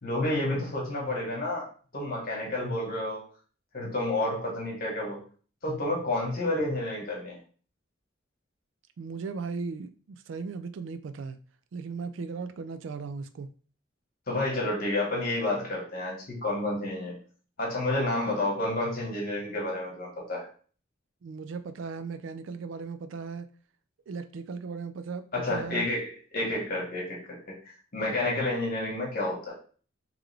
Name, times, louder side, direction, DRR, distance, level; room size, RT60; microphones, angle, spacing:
voice 1, 0.0-3.2 3.7-5.2 5.6-7.4 14.3-17.2 17.6-20.5 25.3-27.4 27.6-29.5, left 2 dB, 50° left, -3 dB, 1.4 m, -30 dB
voice 2, 9.0-9.9 10.3-11.4 11.7-13.5 21.2-23.5 24.1-25.9, right 5 dB, 75° right, 10 dB, 0.4 m, -37 dB
3.7 x 3.2 x 3.3 m, 0.41 s
head